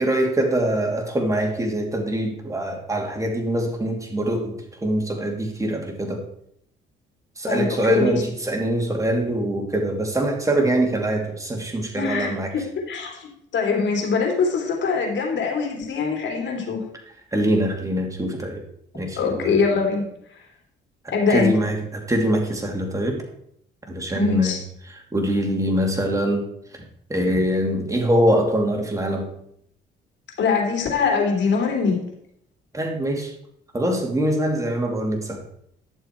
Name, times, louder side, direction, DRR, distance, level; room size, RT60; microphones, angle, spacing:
voice 1, 0.0-4.5 4.8-6.2 7.4-12.5 17.3-18.6 18.9-19.5 21.3-23.2 23.9-24.6 25.1-26.5 27.1-29.3 32.7-33.3 33.7-35.4, right 1 dB, 15° right, 2 dB, 2.6 m, -23 dB
voice 2, 7.5-8.2 12.0-16.8 19.2-20.1 21.1-21.5 24.1-24.6 30.4-32.0, left 5 dB, 65° left, 1 dB, 3.3 m, -23 dB
11.5 x 7.0 x 4.6 m, 0.72 s
cardioid pair, 90°, 20 cm